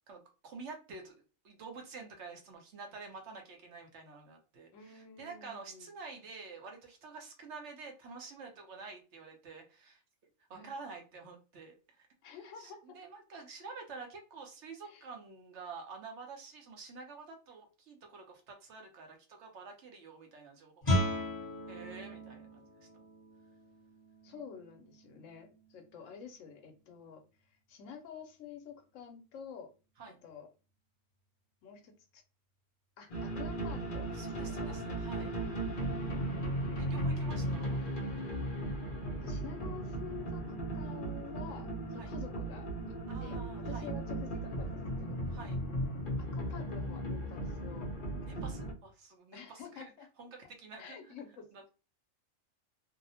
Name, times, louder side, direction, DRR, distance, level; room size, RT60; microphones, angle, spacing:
voice 1, 0.1-1.1 1.4-10.0 10.5-12.1 12.6-21.2 21.7-22.7 30.0-30.2 34.1-35.3 36.8-37.8 42.0-42.1 43.1-43.9 45.3-45.6 48.2-49.9 50.2-51.1 51.5-51.6, right 4 dB, 65° right, 3 dB, 0.9 m, -49 dB
voice 2, 4.7-5.9 10.5-10.7 12.2-13.0 14.8-15.1 24.2-29.7 30.2-30.5 31.6-32.2 33.0-34.8 39.2-40.4 40.7-42.7 43.2-45.2 45.7-45.9 46.2-47.9 49.3-50.1 50.8-51.7, left 7 dB, 75° left, 5 dB, 0.9 m, -49 dB
Guitar, 20.8-26.4, equal, 25° left, 0.9 m, -37 dB
sound 1, 33.1-48.7, right 1 dB, 50° left, 0.7 m, -36 dB
2.7 x 2.0 x 2.7 m, 0.33 s
omnidirectional pair, 1.4 m